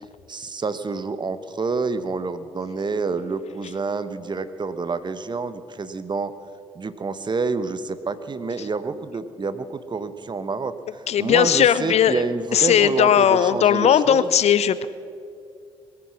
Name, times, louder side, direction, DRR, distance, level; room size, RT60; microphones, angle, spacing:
voice 1, 0.3-6.3 6.7-14.3, right 4 dB, 35° right, 12 dB, 1.1 m, -28 dB
voice 2, 11.1-12.2 12.5-14.9, left 9 dB, 50° left, 16 dB, 0.6 m, -18 dB
21.5 x 9.8 x 6.0 m, 2.4 s
hypercardioid pair, 45°, 14 cm